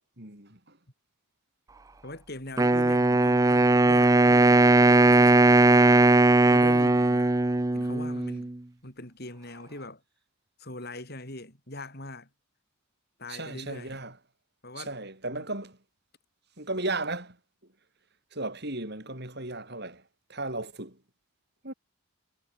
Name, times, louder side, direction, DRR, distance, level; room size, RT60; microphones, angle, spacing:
voice 1, 0.2-0.8 13.3-14.1 14.8-15.8 16.6-17.4 18.3-20.0 20.3-21.0 21.6-21.7, right 2 dB, 50° right, 7.3 m, -35 dB
voice 2, 2.0-6.1 6.5-7.3 7.7-8.5 8.8-10.0 10.6-12.3 13.2-14.0 14.6-14.9 15.3-15.5, left 2 dB, 45° left, 7.2 m, -41 dB
Wind instrument woodwind instrument, 2.6-8.5, right 2 dB, 15° right, 0.5 m, -19 dB
head